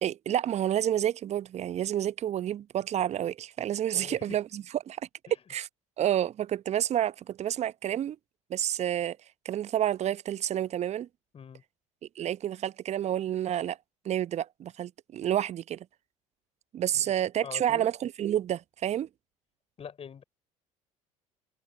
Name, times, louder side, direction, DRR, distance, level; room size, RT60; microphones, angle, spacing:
voice 1, 0.0-5.0 5.5-5.7 6.0-8.2 8.5-9.2 9.4-11.1 12.2-13.8 14.0-15.9 16.7-19.1, right 11 dB, 40° right, 0.8 m, -29 dB
voice 2, 3.9-4.4 11.3-11.6 16.9-17.1 17.4-17.9 19.8-20.2, left 7 dB, 35° left, 3.8 m, -44 dB
open air
figure-of-eight pair, 60°, 18 cm